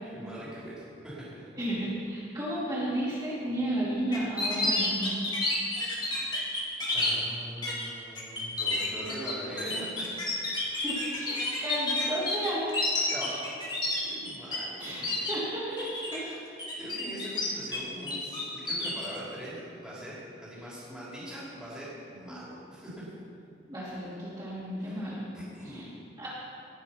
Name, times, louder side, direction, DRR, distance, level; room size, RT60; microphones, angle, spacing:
voice 1, 0.0-1.5 6.9-10.3 13.1-13.5 14.0-15.0 15.8-15.9 16.1-16.4 16.8-23.0 24.8-25.0 25.3-25.9, equal, 5° right, -9 dB, 3.2 m, -42 dB
voice 2, 1.6-5.2 10.8-12.8 14.8-16.3 23.7-25.2 25.6-25.8 26.2-26.3, right 1 dB, 25° right, -10 dB, 3.0 m, -33 dB
sound 1, 4.1-7.1 7.6-7.8 8.2-14.6 14.8-15.4 15.8-16.2 16.6-17.8 18.1-19.1, left 2 dB, 25° left, 2.2 m, -30 dB
18.5 x 6.2 x 5.8 m, 2.4 s
head